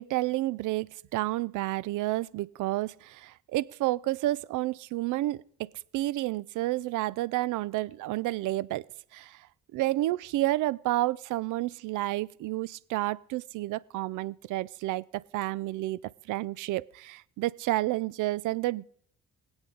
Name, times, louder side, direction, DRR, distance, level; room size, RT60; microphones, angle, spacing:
voice 1, 0.0-5.7 5.9-8.9 9.1-9.5 9.7-16.0 16.3-18.9, right 17 dB, 80° right, 0.5 m, -30 dB
22.5 x 8.1 x 3.8 m
cardioid pair, 90°, 30 cm